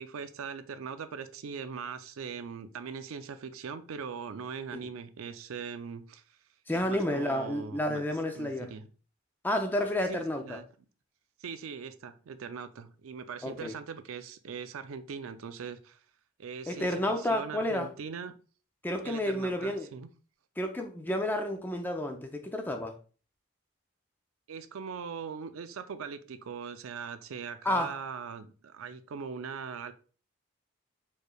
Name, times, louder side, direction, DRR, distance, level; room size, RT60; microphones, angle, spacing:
voice 1, 0.0-6.2 6.7-8.0 8.4-8.9 10.1-10.7 11.4-16.0 16.4-18.3 19.0-20.1 24.5-29.9, right 6 dB, 85° right, 0.4 m, -40 dB
voice 2, 6.7-8.7 9.4-10.6 13.4-13.7 16.7-17.9 18.8-19.9 20.6-22.9 27.6-28.0, left 1 dB, 10° left, 0.4 m, -30 dB
4.5 x 3.2 x 2.3 m
head